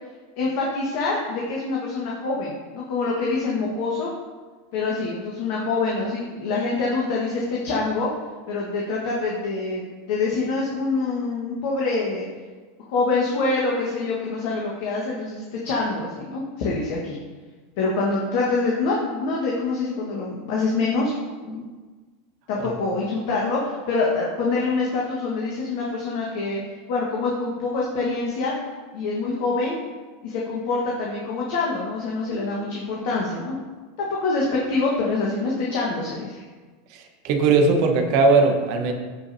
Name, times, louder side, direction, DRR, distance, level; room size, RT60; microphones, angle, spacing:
voice 1, 0.4-4.1 4.7-8.1 8.5-9.8 10.1-12.3 12.9-17.2 17.8-21.1 21.4-21.6 22.5-26.6 26.9-28.5 28.9-29.8 30.2-33.6 34.0-36.4, left 3 dB, 55° left, -3 dB, 1.5 m, -25 dB
voice 2, 36.9-38.9, right 3 dB, 55° right, 4 dB, 1.3 m, -19 dB
14.5 x 5.1 x 2.8 m, 1.4 s
figure-of-eight pair, 85°, 0 cm